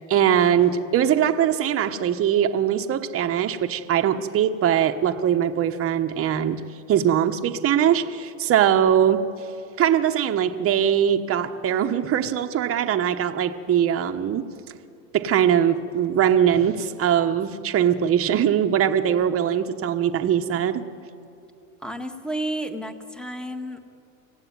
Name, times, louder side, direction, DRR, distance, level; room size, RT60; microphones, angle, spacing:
voice 1, 0.1-6.6 6.9-9.3 9.8-14.5 15.1-20.9, right 9 dB, 35° right, 1.2 m, -21 dB
voice 2, 21.8-23.8, right 1 dB, ahead, 1.7 m, -31 dB
25.0 x 16.5 x 9.6 m
supercardioid pair, 120°, 40 cm